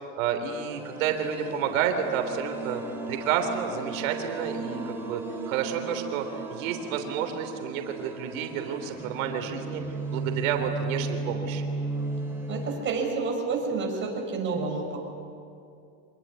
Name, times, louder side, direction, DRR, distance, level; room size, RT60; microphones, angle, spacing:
voice 1, 0.2-2.8 3.1-5.2 5.5-9.8 10.1-11.6, right 8 dB, 80° right, 6 dB, 3.5 m, -30 dB
sound 1, 0.7-12.8, right 3 dB, 5° right, 4.5 m, -35 dB
voice 2, 12.5-15.1, right 4 dB, 30° right, 1 dB, 6.0 m, -29 dB
26.5 x 21.0 x 9.9 m, 2.5 s
supercardioid pair, 150°, 40 cm